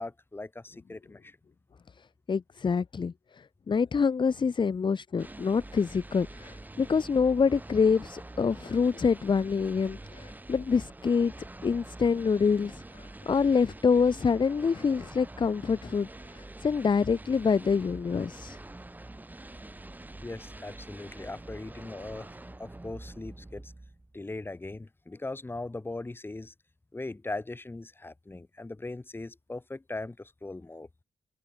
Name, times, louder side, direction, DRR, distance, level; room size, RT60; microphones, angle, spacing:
voice 1, 0.0-1.4 20.2-23.7 24.1-26.5 26.9-30.9, left 2 dB, 15° left, 3.5 m, -39 dB
voice 2, 2.3-3.1 3.7-11.3 11.6-12.8 13.3-16.1 16.6-18.6, left 5 dB, 30° left, 1.2 m, -26 dB
sound 1, 5.2-24.2, right 2 dB, 10° right, 7.0 m, -46 dB
wide cardioid pair, 170°, 16 cm